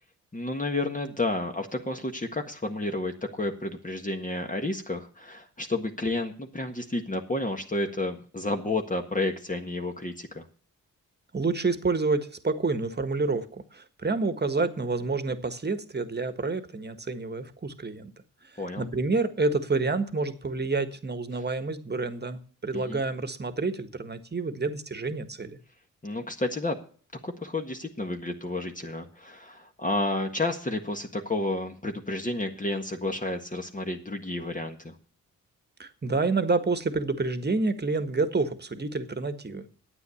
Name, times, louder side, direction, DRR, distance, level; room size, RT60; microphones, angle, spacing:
voice 1, 0.3-10.5 18.6-18.9 22.7-23.0 26.0-26.8 27.2-35.0, left 2 dB, 20° left, 4 dB, 1.6 m, -31 dB
voice 2, 11.3-18.1 18.5-25.6 35.8-39.7, right 3 dB, 30° right, 10 dB, 1.5 m, -28 dB
9.7 x 8.4 x 7.0 m, 0.44 s
supercardioid pair, 50°, 35 cm